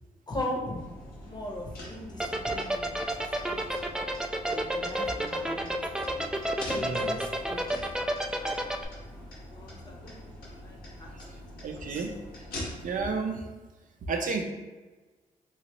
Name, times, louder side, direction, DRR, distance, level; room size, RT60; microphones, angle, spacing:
voice 1, 0.3-0.8 1.2-4.0 4.5-5.7 6.1-6.2 6.7-7.7 8.3-8.9 9.2-12.1, left 1 dB, 30° left, -1 dB, 0.8 m, -40 dB
sound 1, 0.8-13.1, left 1 dB, 90° left, 1.0 m, -44 dB
sound 2, 2.2-8.8, right 1 dB, 5° right, 0.3 m, -29 dB
voice 2, 6.8-7.4 11.6-12.1 12.8-13.4 14.1-14.4, right 4 dB, 65° right, 3 dB, 0.5 m, -31 dB
3.1 x 2.8 x 2.9 m, 1.2 s
cardioid pair, 75°, 15 cm